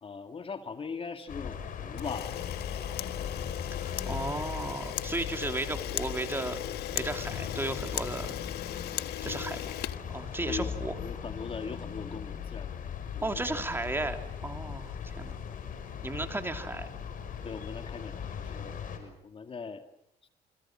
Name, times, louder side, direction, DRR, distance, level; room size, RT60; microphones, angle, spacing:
voice 1, 0.0-2.4 3.0-3.2 10.5-10.7 11.0-13.4 17.4-19.8 20.2-20.3, left 5 dB, 35° left, 7 dB, 2.1 m, -40 dB
sound 1, 1.3-19.0, left 7 dB, 55° left, 6.0 m, -39 dB
Camera, 2.0-10.7, left 14 dB, 75° left, 1.3 m, -38 dB
voice 2, 3.7-6.6 6.9-8.3 9.2-9.7 10.1-11.0 13.2-15.4 16.0-16.9, right 2 dB, 15° right, 6 dB, 3.2 m, -35 dB
28.5 x 27.0 x 7.5 m, 0.75 s
cardioid pair, 110°, 17 cm